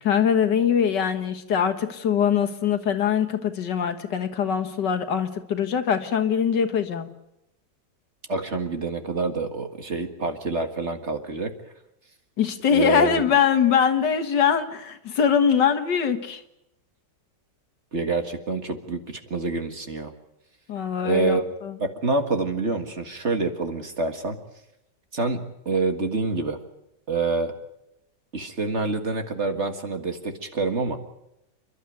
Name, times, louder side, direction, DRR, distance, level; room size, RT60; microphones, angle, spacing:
voice 1, 0.0-7.1 12.4-16.4 20.7-21.8, left 7 dB, 75° left, 8 dB, 2.1 m, -22 dB
voice 2, 8.3-11.5 12.7-13.2 17.9-20.1 21.0-21.4 21.8-24.4 25.1-26.6 27.1-27.5 28.3-31.0, right 3 dB, 40° right, 6 dB, 2.0 m, -27 dB
29.0 x 12.0 x 9.2 m, 0.85 s
omnidirectional pair, 1.9 m